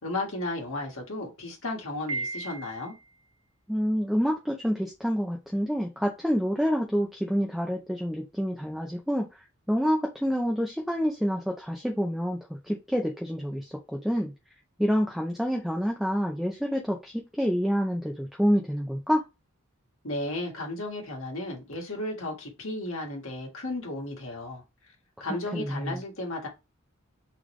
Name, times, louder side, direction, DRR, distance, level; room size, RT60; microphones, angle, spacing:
voice 1, 0.0-2.9 20.0-24.6 25.2-26.5, left 2 dB, 70° left, 1.6 m, -34 dB
Piano, 2.1-3.1, right 3 dB, 90° right, 1.2 m, -35 dB
voice 2, 3.7-9.3 9.7-14.3 14.8-19.2 25.5-26.0, equal, ahead, 0.5 m, -27 dB
4.0 x 3.3 x 3.1 m
head